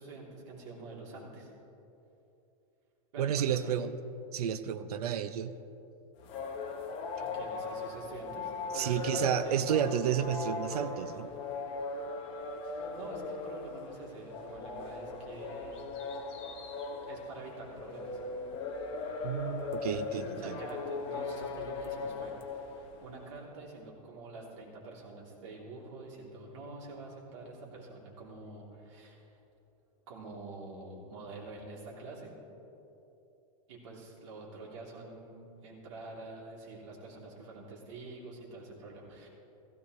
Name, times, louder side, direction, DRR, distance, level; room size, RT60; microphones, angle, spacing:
voice 1, 0.0-1.5 3.1-3.7 7.2-9.6 12.9-15.8 17.1-18.2 20.4-29.4 30.1-32.3 33.7-39.3, right 2 dB, 55° right, -3 dB, 3.2 m, -46 dB
voice 2, 3.2-3.9 4.3-5.6 8.7-11.3 19.2-20.6, right 9 dB, 85° right, 11 dB, 0.7 m, -31 dB
sound 1, 6.2-23.2, left 4 dB, 30° left, 1.1 m, -39 dB
16.0 x 15.5 x 3.2 m, 2.9 s
supercardioid pair, 170°, 19 cm